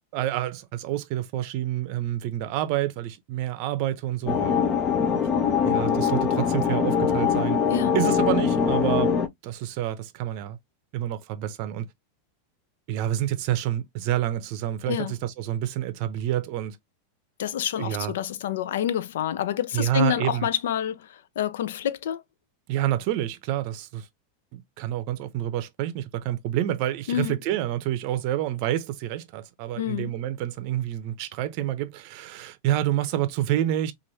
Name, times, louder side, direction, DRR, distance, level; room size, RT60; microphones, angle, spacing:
voice 1, 0.0-4.6 5.1-5.2 5.6-7.6 7.9-9.1 9.4-10.6 10.9-11.9 12.9-16.8 17.8-18.1 19.7-20.5 22.7-24.1 24.5-33.9, right 12 dB, 50° right, 0.6 m, -28 dB
sound 1, 4.3-9.3, left 7 dB, 30° left, 0.5 m, -23 dB
voice 2, 14.9-15.2 17.4-22.2 27.1-27.4 29.8-30.1, left 10 dB, 80° left, 0.4 m, -28 dB
3.0 x 2.5 x 2.7 m
supercardioid pair, 135°, 0 cm